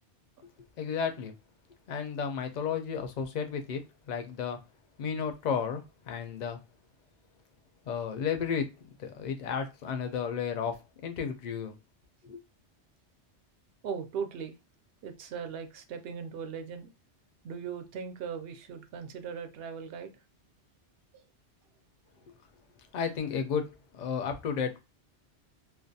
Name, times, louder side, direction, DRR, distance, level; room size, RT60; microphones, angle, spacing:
voice 1, 0.8-1.3 1.9-4.6 5.0-6.6 7.9-8.7 9.0-10.8 11.0-11.8 12.3-12.4 22.9-24.8, left 6 dB, 55° left, 0.5 m, -33 dB
voice 2, 13.8-14.6 15.0-16.9 17.4-20.1 21.1-21.2, right 6 dB, 65° right, 0.7 m, -38 dB
2.4 x 2.2 x 2.6 m
omnidirectional pair, 1.2 m